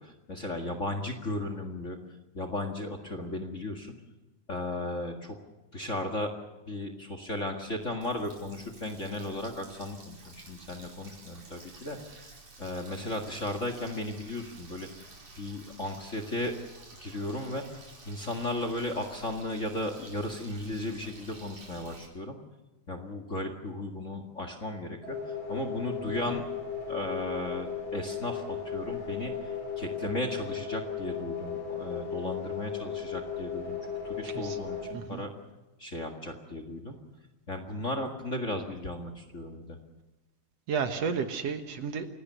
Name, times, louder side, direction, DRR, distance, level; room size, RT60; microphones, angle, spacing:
voice 1, 0.0-2.0 2.3-4.0 4.5-5.4 5.7-6.3 6.7-12.2 12.6-15.1 15.4-16.5 17.0-22.4 22.9-26.4 26.9-33.8 34.0-35.3 35.8-37.0 37.5-39.8, left 1 dB, 30° left, 7 dB, 1.8 m, -35 dB
Water tap faucet, 7.6-22.1, right 3 dB, 85° right, 6.5 m, -51 dB
sound 1, 25.0-34.9, left 7 dB, 50° left, 6.3 m, -36 dB
voice 2, 34.2-34.6 34.9-35.2 40.7-42.1, right 6 dB, 65° right, 8 dB, 2.3 m, -32 dB
28.5 x 17.5 x 6.8 m, 1.1 s
omnidirectional pair, 3.4 m